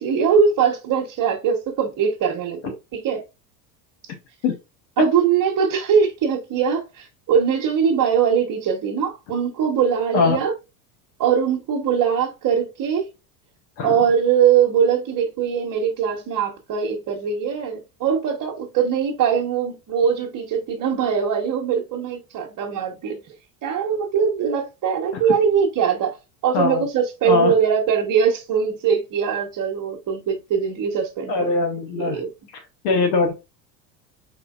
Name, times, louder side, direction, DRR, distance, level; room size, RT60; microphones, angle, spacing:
voice 1, 0.0-3.2 5.0-10.5 11.2-13.1 13.8-23.2 23.6-26.1 26.4-31.3 31.9-32.3, right 7 dB, 40° right, 1.0 m, -21 dB
voice 2, 26.5-26.9 27.2-27.5 31.3-32.2 32.8-33.3, left 4 dB, 55° left, 1.1 m, -21 dB
4.3 x 3.6 x 2.4 m
supercardioid pair, 95°, 49 cm